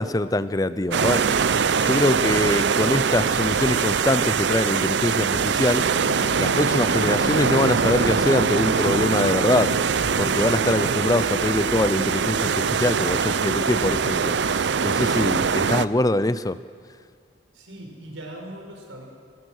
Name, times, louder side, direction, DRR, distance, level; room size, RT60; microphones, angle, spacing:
voice 1, 0.0-1.4 1.8-5.8 6.4-9.7 10.2-14.4 14.8-16.6, left 1 dB, 20° left, 15 dB, 0.5 m, -23 dB
sound 1, 0.9-15.9, right 6 dB, 60° right, 0.5 m, -22 dB
sound 2, 5.8-14.6, left 5 dB, 65° left, 0.7 m, -37 dB
voice 2, 17.5-19.0, right 1 dB, 85° right, 1 dB, 5.4 m, -39 dB
23.0 x 22.0 x 6.5 m, 2.1 s
head